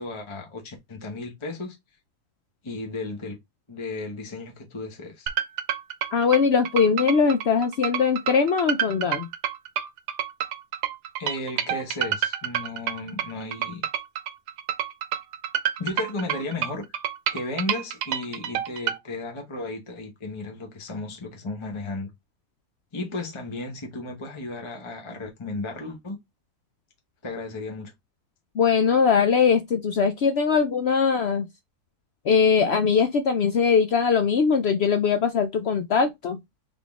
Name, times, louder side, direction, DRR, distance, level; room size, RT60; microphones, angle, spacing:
voice 1, 0.0-1.8 2.6-3.4 3.7-5.3 11.2-13.8 15.8-16.8 17.3-22.1 22.9-26.2 27.2-27.9, left 2 dB, 20° left, 0.9 m, -34 dB
sound 1, 5.3-19.0, right 10 dB, 90° right, 1.2 m, -28 dB
voice 2, 6.1-9.3 28.6-31.5 32.2-36.4, left 6 dB, 70° left, 0.6 m, -21 dB
3.7 x 3.6 x 3.6 m
omnidirectional pair, 1.7 m